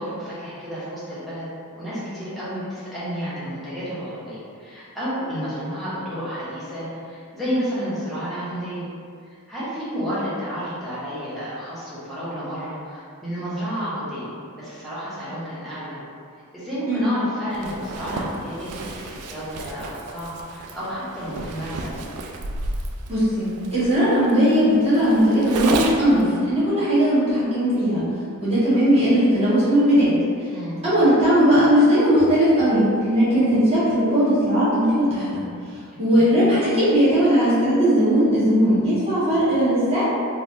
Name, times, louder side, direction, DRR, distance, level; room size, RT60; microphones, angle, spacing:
voice 1, 0.0-1.4 1.7-8.9 9.2-16.0 16.5-21.9 30.5-30.8 35.9-36.3, equal, ahead, -12 dB, 0.8 m, -31 dB
Zipper (clothing), 17.5-26.2, right 3 dB, 80° right, 0.3 m, -32 dB
voice 2, 23.1-28.0 28.4-30.1 30.8-35.4 36.0-40.0, equal, 25° right, -12 dB, 1.2 m, -18 dB
3.3 x 2.3 x 2.6 m, 2.3 s
head